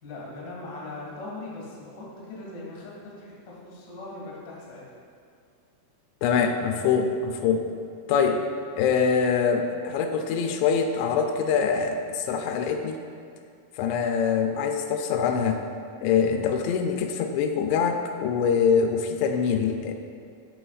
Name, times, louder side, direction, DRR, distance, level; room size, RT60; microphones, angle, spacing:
voice 1, 0.0-4.8, left 2 dB, 50° left, -6 dB, 1.2 m, -40 dB
voice 2, 6.2-7.7 8.1-8.4 8.8-13.0 13.8-15.6 16.0-19.9, left 6 dB, 85° left, 5 dB, 2.7 m, -24 dB
13.0 x 4.9 x 2.4 m, 2.3 s
omnidirectional pair, 5.0 m